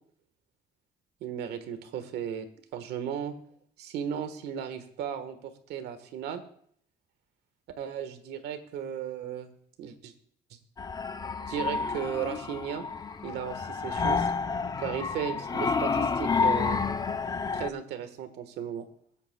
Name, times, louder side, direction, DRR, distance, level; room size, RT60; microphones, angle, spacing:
voice 1, 1.2-2.5 2.7-3.3 3.8-5.4 5.7-6.4 7.8-9.5 9.8-10.1 11.5-12.8 13.2-14.3 14.8-16.8 17.5-18.9, right 8 dB, 75° right, 8 dB, 1.4 m, -35 dB
sound 1, 10.8-17.7, left 5 dB, 25° left, 0.5 m, -29 dB
23.0 x 8.2 x 2.3 m, 0.63 s
cardioid pair, 110°, 17 cm